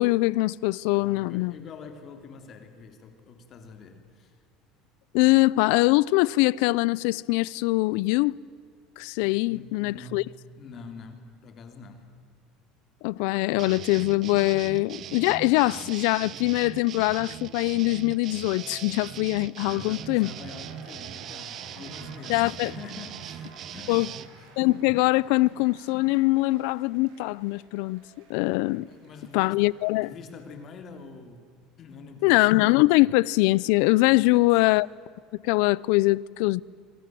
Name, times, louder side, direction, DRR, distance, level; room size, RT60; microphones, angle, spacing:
voice 1, 0.0-1.5 5.1-8.4 9.0-10.2 13.0-20.3 22.3-22.7 23.9-24.1 24.6-28.0 28.3-28.9 29.3-30.1 32.2-34.9 35.4-36.6, left 21 dB, 70° left, 0.6 m, -23 dB
voice 2, 0.9-4.4 9.2-10.3 10.5-12.2 19.6-24.5 28.9-32.4 34.0-34.4, left 4 dB, 35° left, 3.3 m, -45 dB
sound 1, 13.6-24.3, right 10 dB, 40° right, 1.1 m, -40 dB
sound 2, 19.7-30.4 30.7-30.8, right 3 dB, 90° right, 7.2 m, -53 dB
27.5 x 26.0 x 7.7 m
cardioid pair, 155°, 0 cm